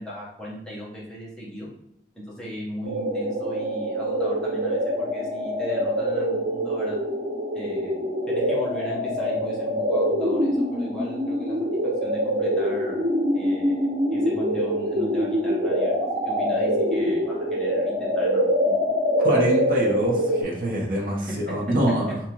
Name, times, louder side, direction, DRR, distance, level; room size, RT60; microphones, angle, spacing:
voice 1, 0.0-1.7 2.1-7.0 7.5-8.0 8.3-11.5 12.0-16.0 16.2-18.7, equal, 5° left, -7 dB, 0.9 m, -36 dB
sound 1, 2.8-20.4, equal, 85° right, 0.9 m, -24 dB
voice 2, 19.2-22.2, equal, 50° right, -2 dB, 0.8 m, -25 dB
3.6 x 2.9 x 2.9 m, 0.74 s
head